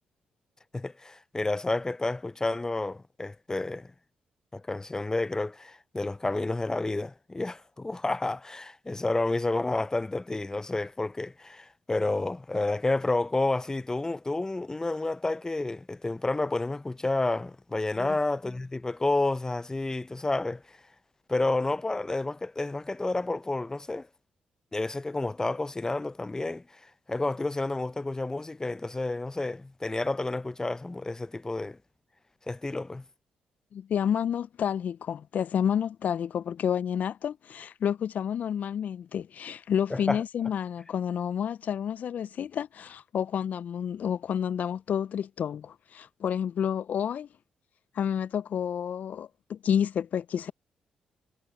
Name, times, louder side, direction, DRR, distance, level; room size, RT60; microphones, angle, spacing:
voice 1, 0.7-3.9 4.5-20.8 21.3-24.1 24.7-31.8 32.5-33.0 39.9-40.2, left 2 dB, 20° left, 0.7 m, -30 dB
voice 2, 33.7-47.3 47.9-50.5, left 8 dB, 60° left, 0.4 m, -30 dB
supercardioid pair, 50°, 3 cm